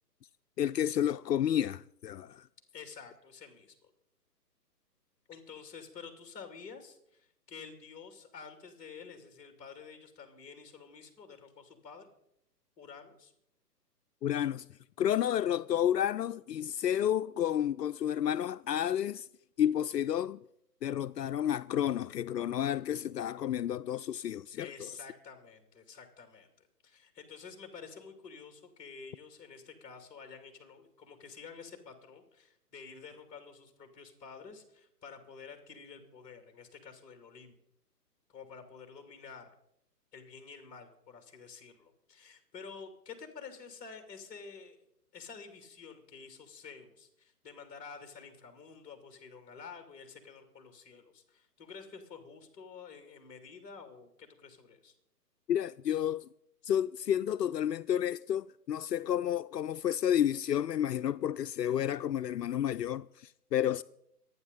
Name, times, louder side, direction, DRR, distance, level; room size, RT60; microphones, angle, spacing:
voice 1, 0.6-2.5 14.2-14.7 15.0-19.3 19.6-20.4 20.8-24.9 55.5-56.3 56.6-63.8, left 10 dB, 75° left, 0.6 m, -31 dB
voice 2, 2.7-3.9 5.3-12.1 12.8-13.3 24.6-37.5 38.3-39.5 40.1-44.8 45.1-54.9, left 5 dB, 15° left, 2.4 m, -50 dB
24.0 x 9.6 x 4.1 m
hypercardioid pair, 145°, 49 cm